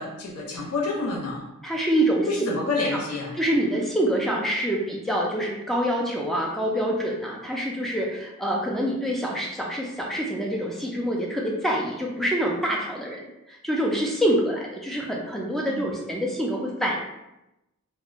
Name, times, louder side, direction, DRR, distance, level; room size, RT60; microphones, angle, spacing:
voice 1, 0.0-1.4 2.3-3.3 15.7-15.8, left 3 dB, 90° left, -3 dB, 0.6 m, -28 dB
voice 2, 1.6-2.3 2.9-3.0 3.4-17.0, right 1 dB, ahead, -2 dB, 0.3 m, -26 dB
2.4 x 2.1 x 2.9 m, 0.92 s
head